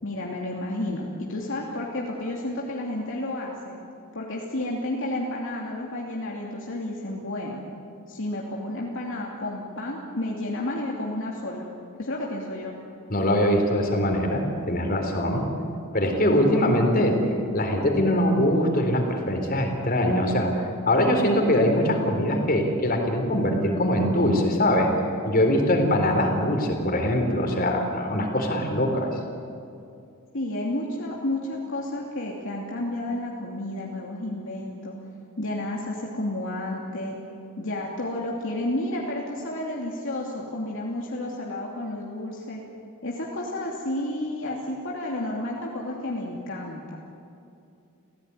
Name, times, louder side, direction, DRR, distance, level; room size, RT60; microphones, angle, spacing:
voice 1, 0.0-3.8 4.1-7.6 8.1-11.7 12.0-12.8 16.5-16.7 30.3-34.9 35.4-37.2 37.6-42.6 43.0-47.0, left 1 dB, 60° left, -2 dB, 2.8 m, -31 dB
voice 2, 13.1-15.4 15.9-17.1 17.5-20.5 20.9-24.9 25.2-29.1, left 1 dB, 40° left, 3 dB, 4.0 m, -22 dB
30.0 x 16.5 x 9.9 m, 2.6 s
head